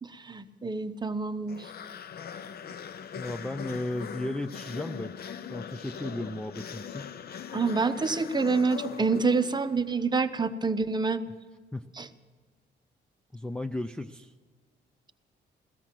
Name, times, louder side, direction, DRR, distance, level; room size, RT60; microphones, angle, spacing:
voice 1, 0.0-1.7 7.5-11.2 12.0-12.1, right 4 dB, 20° right, 9 dB, 0.9 m, -27 dB
sound 1, 1.5-9.9, left 8 dB, 50° left, 0.6 m, -40 dB
voice 2, 3.2-5.1 5.5-7.1 11.7-11.8 13.3-14.3, left 1 dB, 5° left, 4 dB, 0.5 m, -35 dB
17.0 x 13.5 x 5.9 m, 1.5 s
cardioid pair, 90°, 20 cm